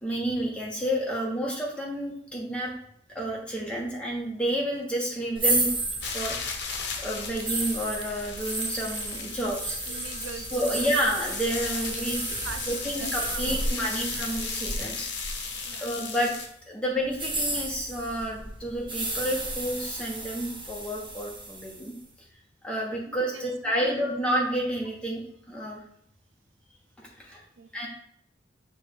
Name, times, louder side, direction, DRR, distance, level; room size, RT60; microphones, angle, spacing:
voice 1, 0.0-2.7 3.1-5.7 6.0-6.6 7.0-9.8 10.5-12.2 12.7-15.1 15.8-16.3 16.7-21.9 22.6-25.8 27.0-27.4 27.7-27.9, equal, 5° left, -3 dB, 1.1 m, -30 dB
sound 1, 5.3-16.3 17.1-21.9, right 2 dB, 25° right, 1.2 m, -33 dB
sound 2, 6.0-16.5, left 5 dB, 65° left, 0.9 m, -37 dB
voice 2, 9.9-10.8 11.8-12.0 12.4-13.9 15.6-15.9 23.1-23.9 27.6-27.7, right 6 dB, 85° right, 8 dB, 0.5 m, -43 dB
6.8 x 2.7 x 5.2 m, 0.69 s
head